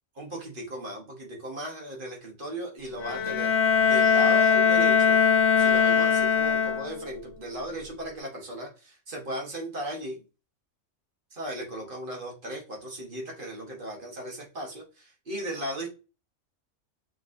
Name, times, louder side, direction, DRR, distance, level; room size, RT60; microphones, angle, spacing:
voice 1, 0.2-5.2 5.6-10.2 11.3-15.9, right 1 dB, 40° right, 0 dB, 1.2 m, -37 dB
Bowed string instrument, 3.0-7.1, left 6 dB, 65° left, 0.8 m, -21 dB
6.2 x 3.1 x 2.5 m, 0.32 s
omnidirectional pair, 1.4 m